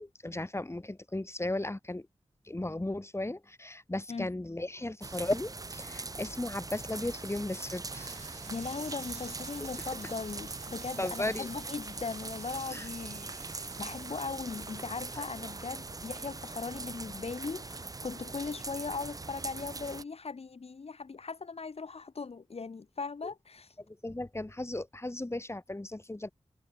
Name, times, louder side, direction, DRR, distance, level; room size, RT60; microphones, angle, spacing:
voice 1, 0.0-2.1 2.4-8.4 9.6-9.7 11.0-11.5 12.7-12.9 15.1-15.2 23.2-23.3 23.9-26.3, left 2 dB, 25° left, 2.7 m, -36 dB
sound 1, 5.0-20.0, right 3 dB, 35° right, 0.6 m, -42 dB
sound 2, 7.9-17.7, right 5 dB, 80° right, 1.8 m, -51 dB
voice 2, 8.5-23.8, left 4 dB, 65° left, 1.2 m, -39 dB
wide cardioid pair, 60°, 11 cm